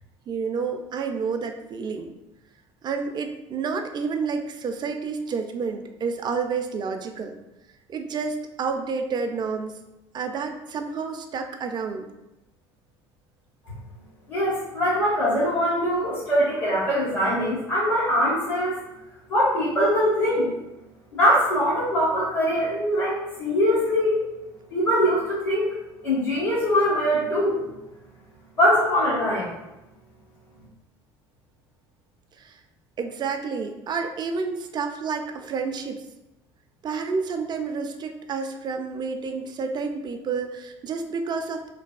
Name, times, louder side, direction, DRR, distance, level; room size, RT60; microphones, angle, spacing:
voice 1, 0.3-2.1 2.8-7.4 7.9-9.8 10.1-12.1 32.4-32.6 33.0-36.1 36.8-41.7, right 5 dB, 35° right, 5 dB, 0.4 m, -29 dB
voice 2, 14.3-18.8 19.3-20.5 21.1-24.2 24.7-25.7 26.0-27.6 28.6-29.5, equal, 85° left, -14 dB, 1.1 m, -22 dB
3.2 x 2.3 x 2.3 m, 0.95 s
hypercardioid pair, 60°, 14 cm